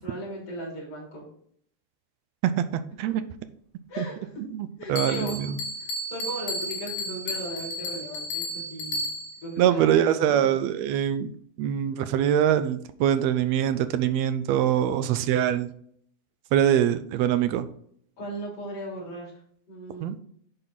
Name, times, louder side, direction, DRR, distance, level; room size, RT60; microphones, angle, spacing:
voice 1, 0.0-1.3 3.9-4.3 4.8-5.5 5.8-9.1 9.4-10.7 18.2-19.3 19.7-20.2, right 1 dB, 50° left, -5 dB, 4.3 m, -36 dB
voice 2, 4.5-5.5 9.6-11.3 11.6-15.7 16.5-17.7 20.0-20.1, right 10 dB, 75° right, 11 dB, 1.7 m, -23 dB
Bell, 5.0-9.5, left 1 dB, 85° left, 2.4 m, -33 dB
11.0 x 4.0 x 3.9 m, 0.63 s
omnidirectional pair, 3.3 m